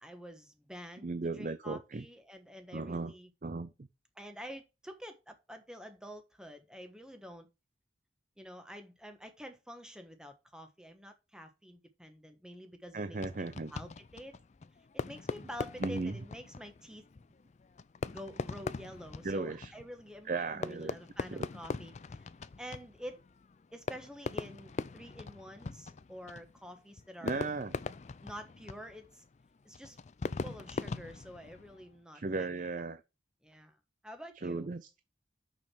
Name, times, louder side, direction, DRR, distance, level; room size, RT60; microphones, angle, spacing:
voice 1, 0.0-3.3 4.1-7.5 8.4-13.2 13.7-14.3 15.1-17.1 18.1-22.3 22.6-23.2 23.7-27.5 28.2-29.2 29.6-30.0 30.4-32.8 33.4-33.8 34.0-34.7, equal, 5° right, 1.3 m, -48 dB
voice 2, 1.0-2.1 2.7-3.1 3.4-3.7 12.9-13.7 15.8-16.2 19.2-19.7 20.3-21.0 21.3-21.5 27.2-27.7 32.1-33.0 34.4-35.0, right 3 dB, 45° right, 0.5 m, -36 dB
Fireworks, 13.1-32.0, left 4 dB, 40° left, 0.4 m, -42 dB
6.6 x 6.1 x 5.9 m
head